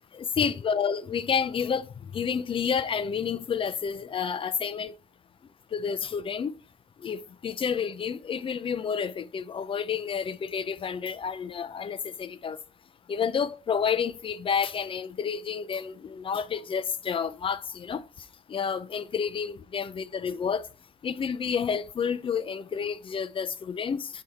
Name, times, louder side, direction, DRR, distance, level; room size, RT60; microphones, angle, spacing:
voice 1, 0.1-1.9 2.1-4.9 5.7-6.5 7.0-12.6 13.1-18.0 18.5-20.7 21.0-24.1, left 6 dB, 30° left, 0.5 m, -30 dB
6.3 x 3.5 x 5.6 m
cardioid pair, 110°, 17 cm